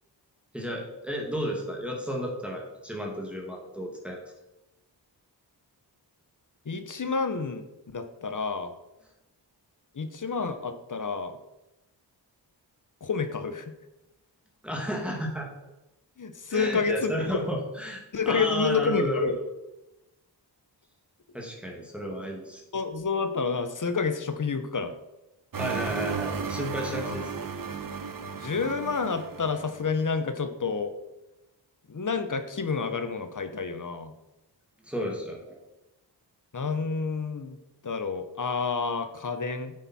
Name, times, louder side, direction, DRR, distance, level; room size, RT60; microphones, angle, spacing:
voice 1, 0.5-4.2 14.6-15.5 16.5-19.4 21.3-22.6 25.6-27.3 34.8-35.6, equal, 5° right, -1 dB, 2.3 m, -32 dB
voice 2, 6.6-7.7 7.9-8.7 9.9-11.4 13.0-13.7 16.2-17.3 18.1-19.3 22.7-24.9 26.9-27.2 28.3-30.9 31.9-34.1 36.5-37.6 37.8-39.7, left 5 dB, 45° left, 9 dB, 1.1 m, -29 dB
sound 1, 25.5-29.9, right 5 dB, 50° right, 1.0 m, -34 dB
9.3 x 8.9 x 4.4 m, 0.94 s
wide cardioid pair, 115°, 43 cm